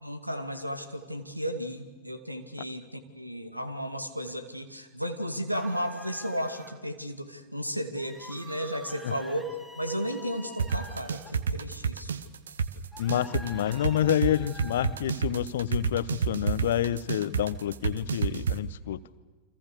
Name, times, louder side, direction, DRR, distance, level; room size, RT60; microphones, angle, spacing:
voice 1, 0.0-9.5 9.8-12.2, equal, 90° right, 9 dB, 2.4 m, -34 dB
sound 1, 5.5-6.7 8.0-11.3 12.9-15.0, right 1 dB, 5° right, 3.2 m, -47 dB
sound 2, 10.6-18.6, right 6 dB, 65° right, 1.3 m, -28 dB
voice 2, 13.0-19.0, left 11 dB, 60° left, 17 dB, 1.0 m, -28 dB
30.0 x 25.5 x 6.8 m, 1.3 s
figure-of-eight pair, 90°, 0 cm